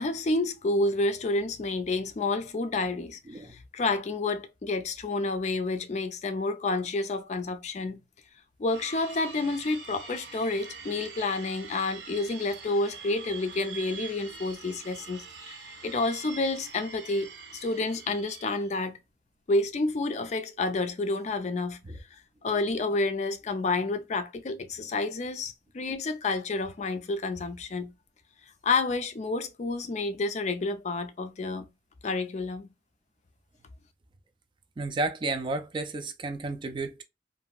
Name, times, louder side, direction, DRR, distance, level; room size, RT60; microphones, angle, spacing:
voice 1, 0.0-8.0 8.6-17.3 17.5-19.0 19.5-21.8 22.4-27.9 28.6-31.7 32.0-32.7, left 3 dB, 40° left, 0.4 m, -29 dB
sound 1, 8.7-18.8, right 5 dB, 90° right, 0.8 m, -44 dB
voice 2, 34.8-37.0, right 3 dB, 30° right, 0.3 m, -32 dB
2.8 x 2.6 x 2.3 m
head